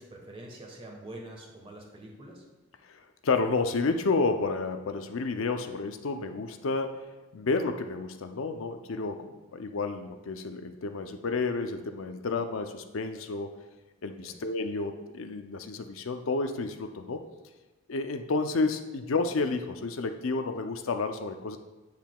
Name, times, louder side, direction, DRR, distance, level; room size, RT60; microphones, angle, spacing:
voice 1, 0.0-2.4 14.2-14.4, right 1 dB, 30° right, 0 dB, 1.3 m, -45 dB
voice 2, 2.9-7.0 7.3-13.5 14.0-17.2 17.9-21.6, left 3 dB, 85° left, 7 dB, 0.5 m, -30 dB
7.8 x 7.2 x 2.3 m, 1.2 s
head